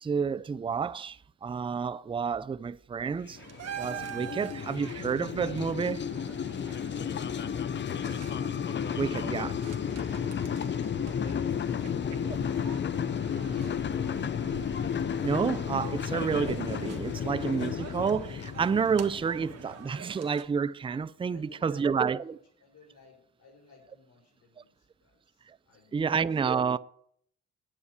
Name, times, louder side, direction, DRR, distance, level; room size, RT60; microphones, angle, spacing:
voice 1, 0.0-3.4 3.8-6.0 9.0-9.6 15.2-22.4 24.6-24.7 25.5-25.6 25.9-26.8, right 6 dB, 20° right, 0.4 m, -30 dB
sound 1, 3.2-19.9, left 8 dB, 40° left, 0.6 m, -33 dB
sound 2, 3.4-20.5, right 8 dB, 55° right, 1.5 m, -46 dB
Car passing by / Race car auto racing, 10.3-20.4, left 5 dB, 80° left, 2.5 m, -51 dB
voice 2, 11.0-13.0 13.3-14.3 21.3-26.8, left 4 dB, 55° left, 6.1 m, -55 dB
9.8 x 8.4 x 8.1 m
cardioid pair, 90°, 30 cm